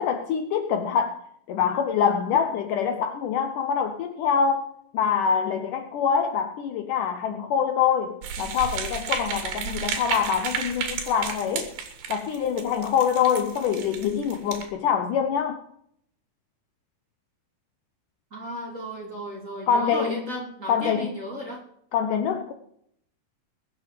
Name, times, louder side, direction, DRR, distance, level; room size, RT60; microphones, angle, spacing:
voice 1, 0.0-4.7 4.9-11.7 12.1-15.6 19.7-20.2 20.7-21.1 21.9-22.5, left 7 dB, 70° left, 7 dB, 2.2 m, -25 dB
sound 1, 8.2-14.7, right 6 dB, 75° right, 3.6 m, -33 dB
voice 2, 18.3-21.6, equal, 20° right, -1 dB, 3.0 m, -34 dB
22.0 x 7.7 x 5.0 m, 0.69 s
omnidirectional pair, 4.4 m